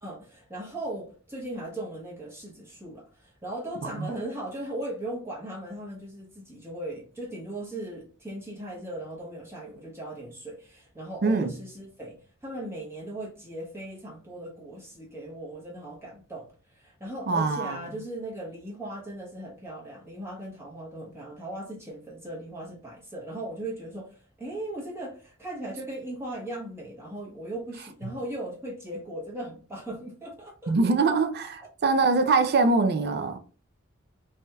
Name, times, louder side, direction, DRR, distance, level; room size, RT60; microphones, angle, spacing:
voice 1, 0.0-12.2 12.4-30.7, right 1 dB, 15° right, 0.9 m, -38 dB
voice 2, 11.2-11.5 17.3-17.8 30.7-33.4, right 3 dB, 55° right, 0.5 m, -23 dB
3.4 x 2.7 x 2.2 m
head